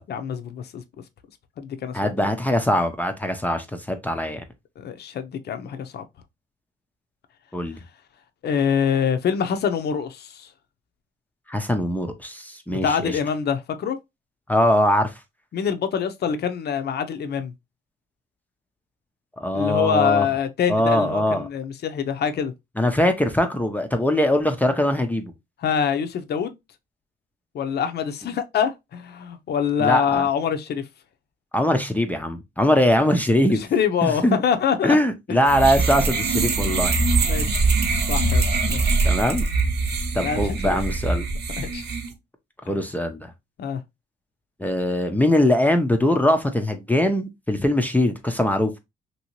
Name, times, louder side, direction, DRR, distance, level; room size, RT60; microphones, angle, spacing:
voice 1, 0.1-0.8 1.6-2.3 4.8-6.1 8.4-10.5 12.7-14.0 15.5-17.5 19.5-22.5 25.6-26.5 27.5-30.8 33.5-35.0 35.3-35.4 37.2-37.7 38.1-39.0 40.2-40.8 41.6-41.9 43.6-43.8, left 7 dB, 55° left, 0.6 m, -25 dB
voice 2, 1.9-4.4 7.5-7.8 11.5-13.1 14.5-15.1 19.4-20.3 20.7-21.5 22.8-25.3 29.8-30.3 31.5-33.6 34.0-34.4 34.8-37.0 39.0-39.4 40.1-41.3 42.7-43.3 44.6-48.7, left 1 dB, 10° left, 0.5 m, -21 dB
sound 1, 35.5-42.1, right 3 dB, 60° right, 0.8 m, -23 dB
3.0 x 2.7 x 2.9 m
cardioid pair, 90°, 20 cm